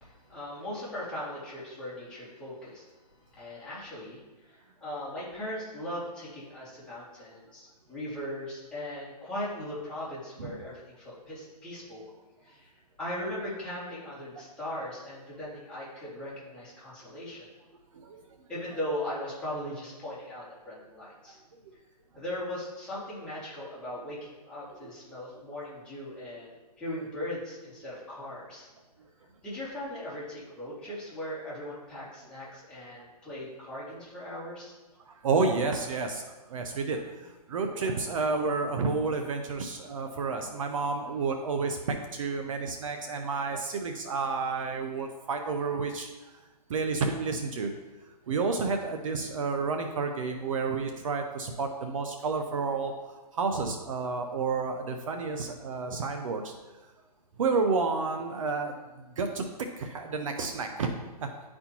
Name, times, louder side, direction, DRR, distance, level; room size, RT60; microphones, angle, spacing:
voice 1, 0.0-2.8 3.3-12.0 12.4-12.7 13.0-17.5 18.5-21.4 22.1-28.7 29.4-34.7, left 1 dB, 5° left, -10 dB, 2.0 m, -39 dB
voice 2, 35.1-41.8 42.1-46.1 46.7-47.7 48.3-56.5 57.4-58.8 59.2-59.4 59.8-61.3, right 4 dB, 55° right, 5 dB, 0.7 m, -30 dB
10.5 x 4.3 x 2.9 m, 1.2 s
hypercardioid pair, 155°, 20 cm